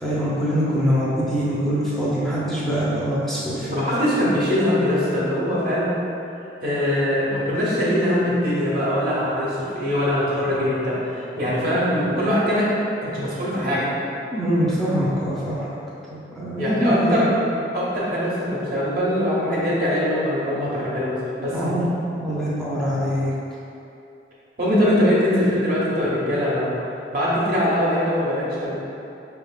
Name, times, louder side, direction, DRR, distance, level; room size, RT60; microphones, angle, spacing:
voice 1, 0.0-3.8 14.3-15.7 16.1-17.3 21.5-21.9 22.1-23.3, equal, ahead, -9 dB, 0.6 m, -23 dB
voice 2, 3.7-5.9 6.6-12.7 13.0-13.9 16.6-17.4 17.7-21.6 24.6-26.7 27.1-28.7, equal, 55° right, -7 dB, 1.1 m, -22 dB
5.1 x 3.3 x 2.3 m, 2.7 s
head